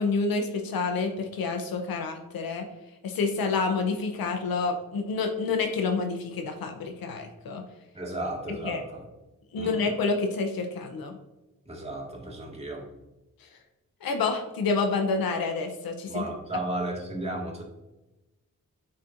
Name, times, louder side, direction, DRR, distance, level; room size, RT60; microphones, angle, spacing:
voice 1, 0.0-2.7 3.0-7.6 8.6-8.8 9.5-11.2 13.4-13.5 14.0-16.2, left 4 dB, 90° left, 5 dB, 0.7 m, -28 dB
voice 2, 7.9-9.1 9.6-9.9 11.7-12.9 16.1-17.6, right 1 dB, 20° right, -2 dB, 1.7 m, -34 dB
9.5 x 4.3 x 2.5 m, 1.0 s
cardioid pair, 80°, 34 cm